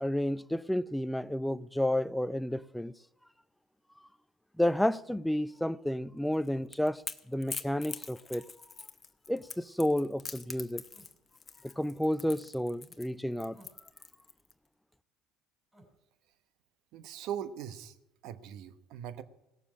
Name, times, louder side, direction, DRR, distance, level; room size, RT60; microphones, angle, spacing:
voice 1, 0.0-2.9 4.6-7.0 7.3-8.4 9.3-10.8 11.6-13.6, left 1 dB, 5° left, 0.4 m, -31 dB
sound 1, 5.0-5.2 6.5-6.7 9.3-9.5 10.9-11.1 13.5-13.9 15.7-15.9, right 1 dB, 15° right, 5.2 m, -59 dB
Crackle / Crack, 6.3-14.5, left 5 dB, 30° left, 0.9 m, -44 dB
voice 2, 16.9-18.0 18.2-19.2, right 9 dB, 70° right, 1.0 m, -40 dB
17.5 x 7.1 x 7.5 m
supercardioid pair, 85°, 0 cm